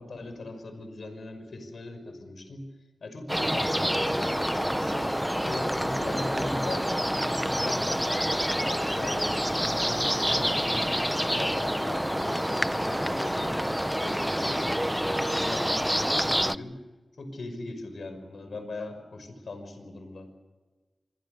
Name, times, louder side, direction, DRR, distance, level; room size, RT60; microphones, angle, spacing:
voice 1, 0.0-2.7 3.0-5.1 5.4-6.9 7.3-13.5 14.0-16.8 17.2-20.3, left 2 dB, 80° left, 8 dB, 5.7 m, -39 dB
sound 1, 3.3-16.6, equal, 5° right, 0.8 m, -27 dB
27.0 x 24.0 x 6.7 m, 1.3 s
cardioid pair, 45°, 0 cm